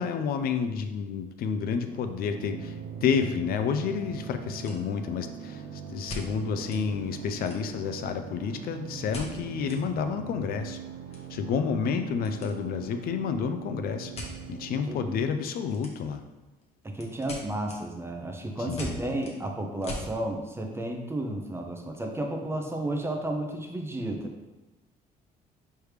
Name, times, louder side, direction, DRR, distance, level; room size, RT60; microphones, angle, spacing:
voice 1, 0.0-10.8 11.3-14.1 14.5-16.2 18.6-19.0, left 6 dB, 60° left, 8 dB, 0.4 m, -30 dB
sound 1, 1.9-14.9, right 8 dB, 85° right, 0.6 m, -41 dB
sound 2, 4.3-5.2 6.1-6.8 7.1-7.9 9.1-9.8 10.1-10.2 10.5-12.5 12.8-13.1 14.1-14.4 15.7-16.2 16.6-20.1, left 1 dB, 40° left, 1.0 m, -41 dB
voice 2, 14.9-15.2 16.8-24.3, right 1 dB, 15° right, 3 dB, 0.6 m, -32 dB
4.8 x 3.3 x 3.2 m, 1.1 s
cardioid pair, 110°, 17 cm